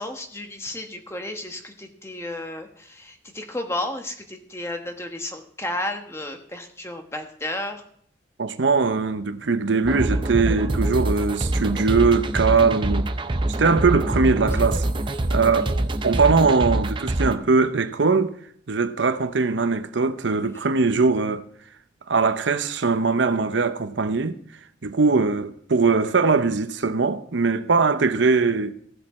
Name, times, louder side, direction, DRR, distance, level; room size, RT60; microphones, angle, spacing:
voice 1, 0.0-7.8 14.5-14.6 20.5-20.7, left 1 dB, 15° left, 1.2 m, -33 dB
voice 2, 8.4-13.1 13.6-14.9 15.3-18.3 18.7-21.4 22.1-24.4 24.8-28.7, right 4 dB, 85° right, 0.8 m, -21 dB
sound 1, 9.8-17.3, right 1 dB, 25° right, 0.5 m, -25 dB
15.5 x 7.5 x 4.3 m
head